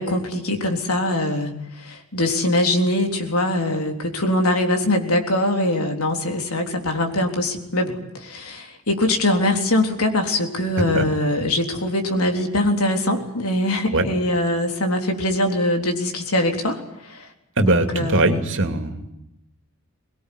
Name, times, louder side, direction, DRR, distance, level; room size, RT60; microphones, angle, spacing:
voice 1, 0.0-1.5 1.8-17.3 17.6-18.4, left 1 dB, 75° left, 4 dB, 3.6 m, -22 dB
voice 2, 17.6-19.1, right 2 dB, 60° right, 6 dB, 2.7 m, -21 dB
23.5 x 20.5 x 10.0 m, 0.86 s
head